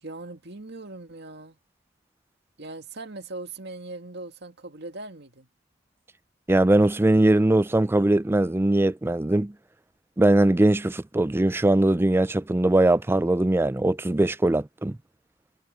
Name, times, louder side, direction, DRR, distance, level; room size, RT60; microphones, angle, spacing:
voice 1, 0.0-1.6 2.6-5.5, right 2 dB, 60° right, 2.1 m, -40 dB
voice 2, 6.5-9.5 10.2-15.0, right 1 dB, 10° right, 0.4 m, -21 dB
head